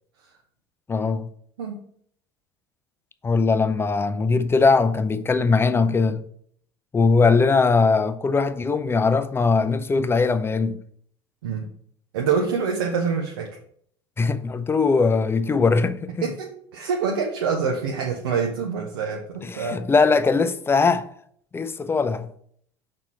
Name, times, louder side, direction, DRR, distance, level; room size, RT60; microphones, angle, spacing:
voice 1, 0.9-1.3 3.2-6.2 6.9-10.8 14.2-16.3 19.4-21.1 21.5-22.3, left 4 dB, 20° left, 0.5 m, -20 dB
voice 2, 12.1-13.6 16.2-19.8, right 5 dB, 70° right, 0.8 m, -26 dB
5.9 x 4.3 x 4.4 m
figure-of-eight pair, 65°, 13 cm